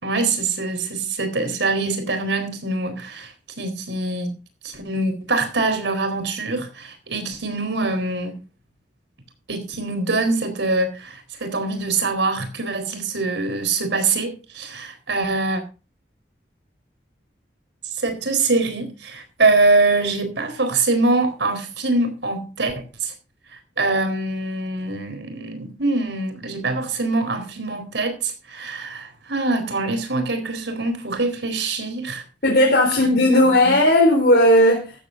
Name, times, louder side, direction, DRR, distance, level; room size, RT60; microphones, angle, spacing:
voice 1, 0.0-4.3 4.6-8.4 9.5-15.6 17.9-23.1 23.5-32.2 33.0-33.8, right 3 dB, 85° right, 4.2 m, -24 dB
voice 2, 32.4-34.9, left 1 dB, 65° left, 3.9 m, -15 dB
15.0 x 14.5 x 2.6 m
head